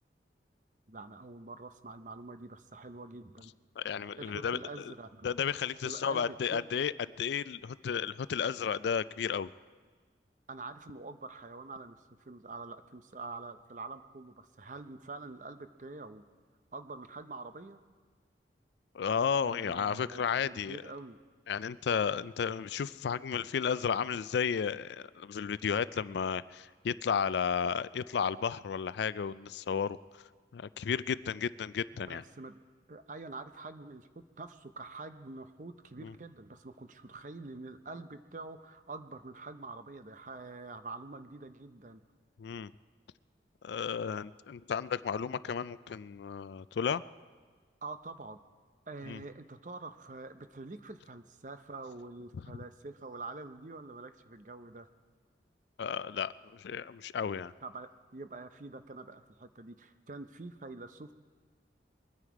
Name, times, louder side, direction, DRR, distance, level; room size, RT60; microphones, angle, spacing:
voice 1, 0.9-3.5 4.2-5.3 5.8-6.7 10.5-16.2 16.7-17.8 19.4-21.2 31.9-32.6 32.9-42.0 47.8-48.4 48.9-54.9 57.6-61.1, right 3 dB, 45° right, 10 dB, 0.6 m, -46 dB
voice 2, 3.8-4.9 5.2-6.9 7.2-9.5 18.9-20.8 21.5-30.0 30.5-32.2 36.0-36.1 42.4-42.7 43.6-47.0 49.1-49.2 55.8-57.5, left 7 dB, 70° left, 17 dB, 0.3 m, -33 dB
23.0 x 9.8 x 4.7 m, 1.5 s
head